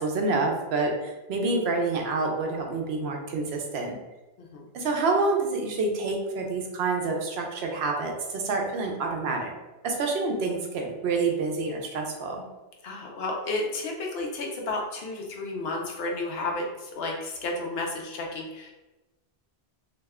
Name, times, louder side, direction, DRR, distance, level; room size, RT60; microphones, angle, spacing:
voice 1, 0.0-4.0 4.7-9.5 9.8-12.4, right 3 dB, 85° right, 2 dB, 0.9 m, -27 dB
voice 2, 12.8-18.7, left 2 dB, 75° left, 0 dB, 0.9 m, -32 dB
2.7 x 2.1 x 3.5 m, 1.1 s
omnidirectional pair, 1.0 m